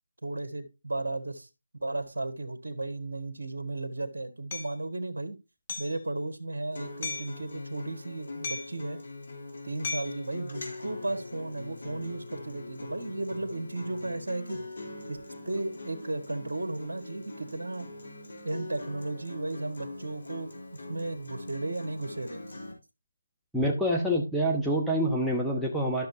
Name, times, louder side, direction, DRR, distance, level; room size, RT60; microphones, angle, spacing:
voice 1, 0.2-1.5 1.8-5.4 5.8-9.0 9.6-14.6 15.1-15.2 15.4-17.9 18.4-22.4, right 2 dB, 70° right, 7 dB, 1.6 m, -35 dB
Hammer, 4.5-4.7 5.7-6.0 7.0-7.4 8.4-8.9 9.8-10.2, left 4 dB, 35° left, 1.7 m, -36 dB
Acoustic guitar, 6.7-22.7, left 2 dB, 60° left, 3.2 m, -42 dB
voice 2, 23.5-26.1, equal, ahead, -4 dB, 0.9 m, -26 dB
12.5 x 6.4 x 2.7 m, 0.26 s
figure-of-eight pair, 160°, 0 cm